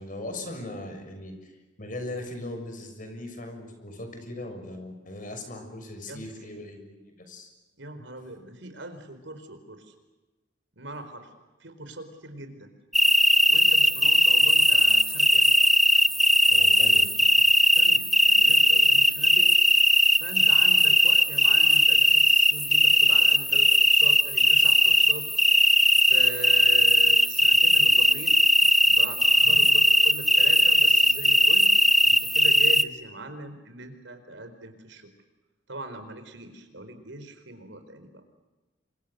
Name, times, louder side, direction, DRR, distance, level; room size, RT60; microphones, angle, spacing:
voice 1, 0.0-7.5 16.5-17.0 17.4-17.5 29.4-29.6, left 1 dB, 45° left, 5 dB, 6.6 m, -39 dB
voice 2, 6.1-6.5 7.8-9.9 10.7-11.3 11.6-12.7 13.5-15.5 17.7-19.6 20.2-25.3 25.6-28.3 28.9-31.7 32.0-35.1 35.7-38.2, right 2 dB, 85° right, 8 dB, 4.5 m, -40 dB
sound 1, 12.9-32.8, equal, ahead, 1.0 m, -19 dB
28.5 x 25.5 x 6.8 m, 1.2 s
head